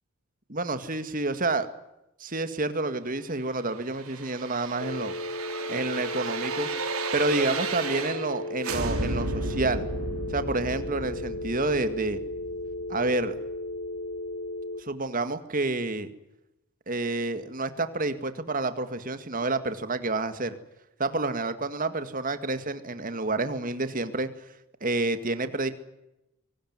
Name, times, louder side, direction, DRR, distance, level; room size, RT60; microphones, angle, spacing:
voice 1, 0.5-1.7 2.2-5.1 5.7-6.7 7.1-9.9 10.3-12.2 12.9-13.3 14.8-16.1 16.9-20.5 21.0-24.3 24.8-25.7, right 2 dB, 40° right, 10 dB, 2.0 m, -29 dB
sound 1, 3.6-8.4 8.6-13.5 13.9-14.0, right 3 dB, 90° right, 4.2 m, -34 dB
sound 2, 4.8-14.8, left 2 dB, 65° left, 1.9 m, -35 dB
24.5 x 18.5 x 9.5 m, 0.90 s
head